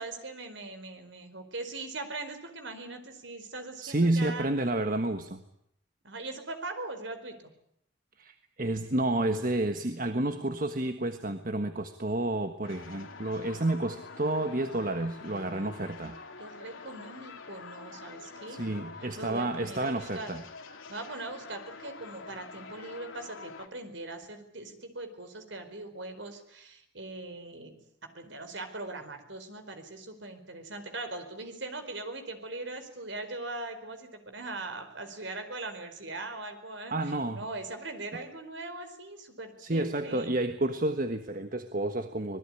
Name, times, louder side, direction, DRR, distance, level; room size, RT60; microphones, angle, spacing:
voice 1, 0.0-4.5 6.0-7.5 16.4-18.6 19.2-20.3 20.9-27.8 28.0-40.3, right 2 dB, 65° right, 8 dB, 4.7 m, -40 dB
voice 2, 3.8-5.4 8.2-16.2 18.5-20.4 36.9-37.4 39.6-42.4, right 2 dB, 45° right, 8 dB, 1.4 m, -30 dB
sound 1, 12.6-23.7, left 4 dB, 85° left, 2.9 m, -46 dB
25.5 x 20.5 x 9.9 m, 0.74 s
head